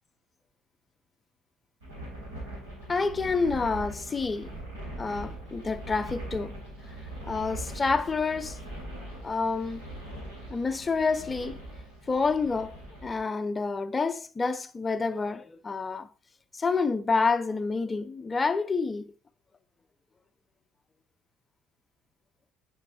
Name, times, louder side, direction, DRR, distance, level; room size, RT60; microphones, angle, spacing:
sound 1, 1.8-13.2, right 1 dB, 75° right, 3.8 m, -41 dB
voice 1, 2.9-4.5 5.0-6.6 7.2-8.6 9.2-9.8 10.5-11.6 12.1-16.1 16.6-19.1, left 4 dB, 25° left, 0.5 m, -28 dB
8.1 x 6.3 x 2.7 m
figure-of-eight pair, 55°, 0 cm